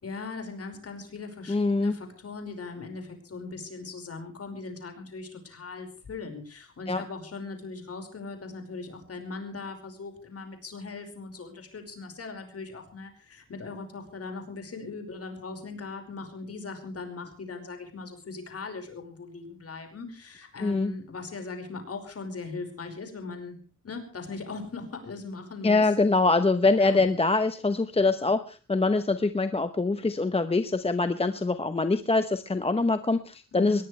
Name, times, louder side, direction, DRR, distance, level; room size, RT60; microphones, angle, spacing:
voice 1, 0.0-23.6 23.8-25.9 26.8-27.0 33.5-33.8, left 4 dB, 45° left, 5 dB, 5.2 m, -39 dB
voice 2, 1.5-1.9 6.9-7.0 20.6-20.9 25.6-33.8, left 3 dB, 20° left, 9 dB, 0.9 m, -24 dB
21.5 x 20.5 x 3.3 m, 0.37 s
wide cardioid pair, 140°, 33 cm